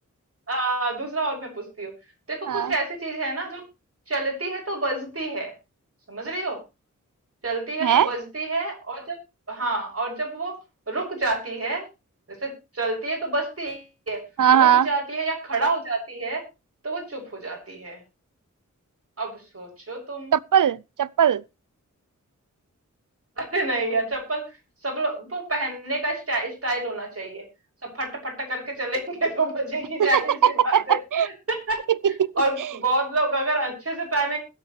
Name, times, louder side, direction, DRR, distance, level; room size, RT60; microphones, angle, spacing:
voice 1, 0.5-1.9 2.3-3.6 4.1-5.5 6.1-6.6 7.4-9.2 9.5-10.6 10.9-11.8 12.3-14.2 14.5-16.4 16.8-18.0 19.2-20.4 23.4-24.4 24.8-27.4 27.8-31.8 32.4-34.4, right 2 dB, 50° right, 6.6 m, -28 dB
voice 2, 14.4-14.9 20.3-21.4 30.0-30.1 30.4-31.3 32.0-32.1, right 9 dB, 85° right, 0.6 m, -19 dB
21.0 x 8.4 x 3.3 m
wide cardioid pair, 90°, 31 cm